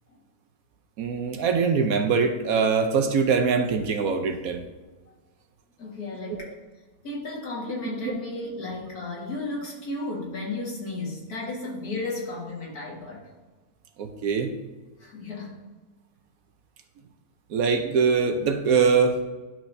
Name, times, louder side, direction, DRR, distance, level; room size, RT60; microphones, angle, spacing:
voice 1, 1.0-4.7 6.3-6.5 8.0-8.1 14.0-14.5 17.5-19.2, right 5 dB, 70° right, 6 dB, 1.1 m, -23 dB
voice 2, 5.8-6.5 7.0-13.3 15.0-15.7, left 2 dB, 75° left, -4 dB, 2.4 m, -34 dB
11.0 x 6.1 x 2.7 m, 1.3 s
omnidirectional pair, 1.6 m